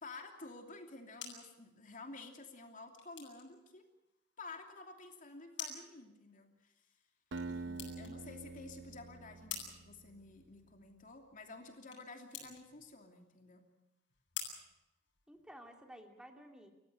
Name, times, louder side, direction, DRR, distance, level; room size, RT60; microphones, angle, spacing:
voice 1, 0.0-3.8 4.4-7.0 7.5-13.6, left 3 dB, 45° left, 3 dB, 2.9 m, -51 dB
sound 1, 1.0-15.7, left 7 dB, 75° left, 7.0 m, -52 dB
Acoustic guitar, 7.3-10.3, right 3 dB, 70° right, 0.8 m, -46 dB
voice 2, 7.8-8.3 15.3-16.7, equal, 5° right, 3 dB, 2.8 m, -54 dB
28.5 x 15.0 x 8.2 m, 0.96 s
head